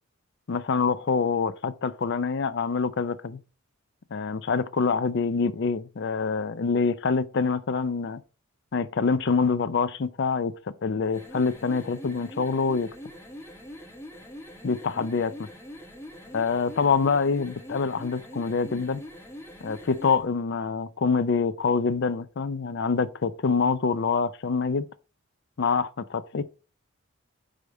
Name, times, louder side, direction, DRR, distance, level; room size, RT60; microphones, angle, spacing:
voice 1, 0.5-3.4 4.1-8.2 8.7-10.5 10.8-12.9 14.6-15.5 16.3-19.0 19.6-24.9 25.6-26.5, left 5 dB, 50° left, 0.5 m, -25 dB
sound 1, 11.0-20.2, equal, 10° left, 1.4 m, -43 dB
4.9 x 4.7 x 5.2 m
head